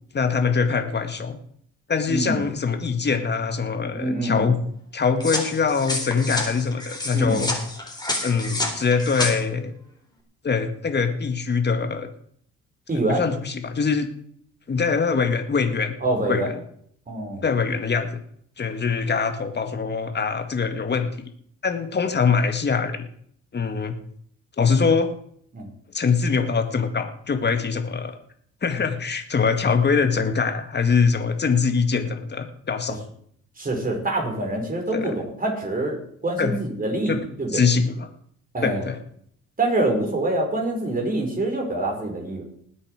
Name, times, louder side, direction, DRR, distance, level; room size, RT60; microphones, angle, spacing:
voice 1, 0.1-1.4 1.9-4.6 4.9-7.5 8.2-9.7 10.4-12.1 13.1-14.1 14.7-15.9 16.3-16.5 17.4-18.2 18.6-21.1 21.6-23.0 23.5-24.0 24.6-25.1 25.9-28.2 28.6-33.0 34.9-35.1 36.4-36.5 37.1-37.2 37.5-38.1 38.6-39.0, left 5 dB, 35° left, 7 dB, 1.9 m, -23 dB
voice 2, 2.1-2.5 3.9-4.6 7.1-7.4 12.9-13.2 16.0-16.5 17.1-17.5 25.5-25.7 28.7-28.8 33.6-36.0 36.2-37.6 38.5-38.9 39.6-42.4, right 2 dB, 30° right, 1 dB, 5.4 m, -25 dB
sound 1, 5.2-9.3, left 2 dB, 15° left, 3.7 m, -29 dB
20.0 x 8.4 x 5.0 m, 0.64 s
cardioid pair, 90°, 30 cm